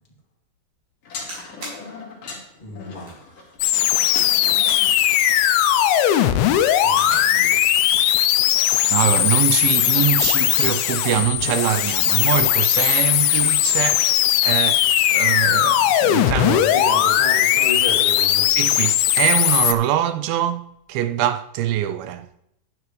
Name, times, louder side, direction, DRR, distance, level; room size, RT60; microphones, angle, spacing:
sound 1, 1.0-5.0, left 4 dB, 60° left, 3.4 m, -38 dB
sound 2, 1.2-1.8 2.4-2.5 3.0-3.2 4.1-4.4 4.7-4.9 5.9-6.3 6.9-7.3 8.6-9.0 10.1-10.8 11.2-11.3 11.5-12.1 12.9-13.2, right 1 dB, 50° right, 5.1 m, -38 dB
voice 1, 2.6-3.3 6.8-7.6 16.4-18.6, left 2 dB, 15° left, 2.1 m, -31 dB
sound 3, 3.6-19.7, left 12 dB, 80° left, 2.5 m, -18 dB
voice 2, 8.9-14.8 15.1-16.6 18.6-22.3, right 12 dB, 80° right, 2.4 m, -23 dB
12.0 x 10.0 x 3.2 m
omnidirectional pair, 4.4 m